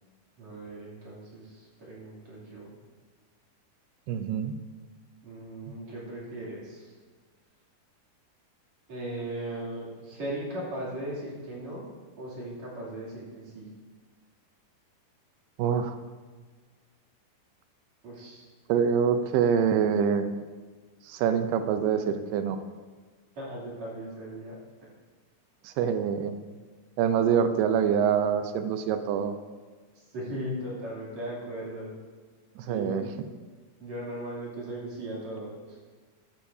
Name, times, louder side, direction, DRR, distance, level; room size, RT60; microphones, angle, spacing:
voice 1, 0.4-2.8 5.2-6.9 8.9-11.9 12.2-13.7 18.0-18.5 23.4-24.6 30.1-31.9 32.6-33.1 33.8-35.8, right 1 dB, 45° right, -6 dB, 3.9 m, -38 dB
voice 2, 4.1-4.5 15.6-16.0 18.7-20.4 21.1-22.6 25.6-26.4 27.0-29.4 32.6-33.0, right 7 dB, 85° right, 8 dB, 2.7 m, -25 dB
13.5 x 12.0 x 2.7 m, 1.4 s
omnidirectional pair, 4.5 m